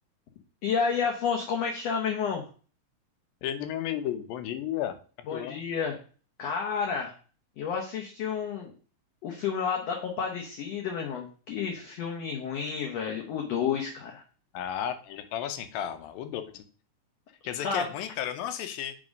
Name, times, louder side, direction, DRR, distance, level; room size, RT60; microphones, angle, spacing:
voice 1, 0.6-2.4 5.3-5.9 6.4-7.1 7.6-8.7 9.2-14.2 17.6-17.9, left 6 dB, 65° left, 1 dB, 1.7 m, -30 dB
voice 2, 3.4-5.0 5.3-5.6 14.5-16.6 17.4-19.0, left 10 dB, 85° left, 9 dB, 2.5 m, -33 dB
7.4 x 3.8 x 5.2 m, 0.38 s
omnidirectional pair, 4.1 m